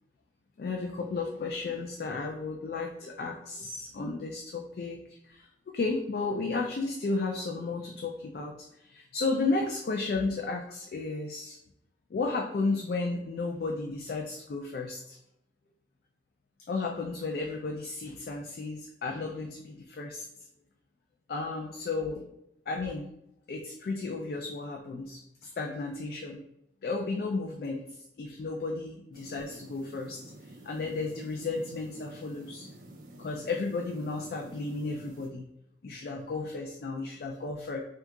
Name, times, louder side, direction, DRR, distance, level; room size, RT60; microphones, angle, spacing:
voice 1, 0.6-11.6 12.1-15.2 16.7-20.2 21.3-22.3 22.7-23.1 23.5-26.4 26.8-27.8 28.2-30.2 30.6-32.7 33.2-35.5 35.8-37.8, left 3 dB, 55° left, 1 dB, 0.3 m, -33 dB
sound 1, 29.1-35.3, right 1 dB, 45° right, 0.4 m, -50 dB
2.7 x 2.3 x 3.5 m, 0.80 s
head